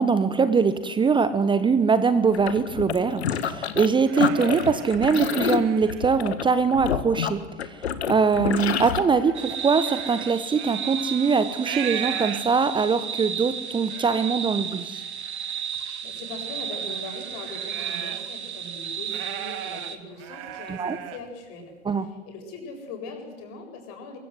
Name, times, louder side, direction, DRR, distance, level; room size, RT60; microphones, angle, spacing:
voice 1, 0.0-15.0 20.7-21.0 21.9-22.0, right 5 dB, 15° right, 13 dB, 1.2 m, -22 dB
sound 1, 2.3-3.9 4.2-9.0, left 8 dB, 65° left, 1.9 m, -28 dB
sound 2, 3.6-6.4 6.8-7.6 8.0-12.8 13.4-13.5 13.7-14.4 14.9-18.4 18.7-21.3, right 12 dB, 40° right, 2.4 m, -39 dB
sound 3, 9.3-20.0, right 8 dB, 70° right, 2.3 m, -33 dB
voice 2, 16.0-24.2, left 3 dB, 40° left, 3 dB, 7.5 m, -40 dB
23.5 x 23.5 x 8.1 m, 1.2 s
figure-of-eight pair, 90°, 35 cm